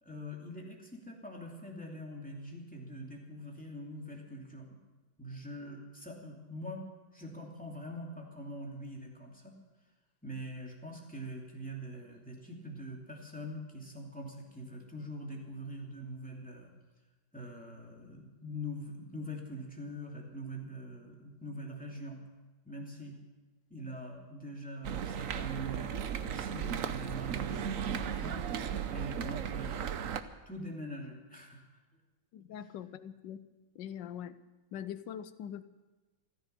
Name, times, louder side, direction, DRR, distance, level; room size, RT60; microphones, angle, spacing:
voice 1, 0.0-4.8 5.2-9.6 10.2-16.7 17.3-22.2 22.6-23.2 23.7-28.4 28.9-30.0 30.5-31.7, equal, 5° left, -1 dB, 2.7 m, -43 dB
sound 1, 24.8-30.2, right 8 dB, 60° right, 1.0 m, -36 dB
voice 2, 32.3-33.4 33.7-34.4 34.7-35.6, left 9 dB, 80° left, 13 dB, 1.4 m, -42 dB
15.0 x 14.0 x 6.8 m, 1.2 s
omnidirectional pair, 2.0 m